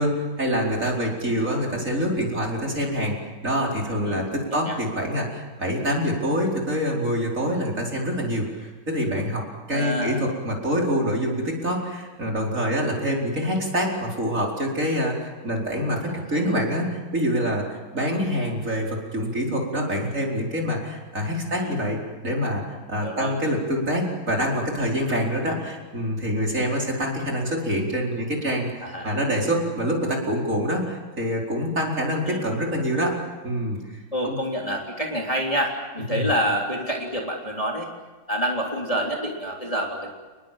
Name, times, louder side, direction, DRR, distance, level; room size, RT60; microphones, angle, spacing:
voice 1, 0.0-33.1 33.4-34.4 36.1-36.3, equal, 35° right, -1 dB, 4.9 m, -26 dB
voice 2, 4.0-4.7 9.7-10.2 16.1-16.5 21.5-21.9 23.0-23.3 28.8-29.1 32.2-32.4 34.1-37.9 38.3-40.1, equal, 15° left, -1 dB, 3.4 m, -28 dB
30.0 x 20.5 x 7.5 m, 1.3 s
omnidirectional pair, 2.2 m